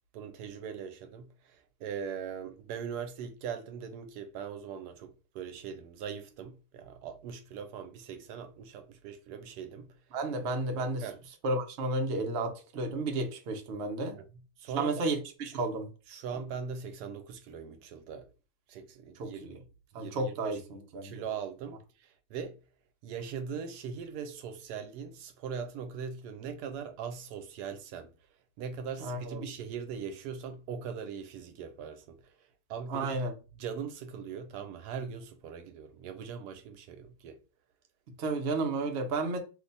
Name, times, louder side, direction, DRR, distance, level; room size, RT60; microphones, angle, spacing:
voice 1, 0.1-10.0 11.0-11.2 14.2-14.3 14.6-15.1 16.1-18.3 18.7-19.6 19.9-20.6 21.0-22.6 23.0-28.1 28.6-33.2 33.5-37.4, right 6 dB, 75° right, 1.1 m, -40 dB
voice 2, 10.1-11.0 11.4-14.2 14.7-15.9 19.2-19.3 19.9-21.1 29.0-29.4 32.9-33.3 38.2-39.4, right 2 dB, 60° right, 0.7 m, -32 dB
2.9 x 2.1 x 3.9 m
omnidirectional pair, 1.8 m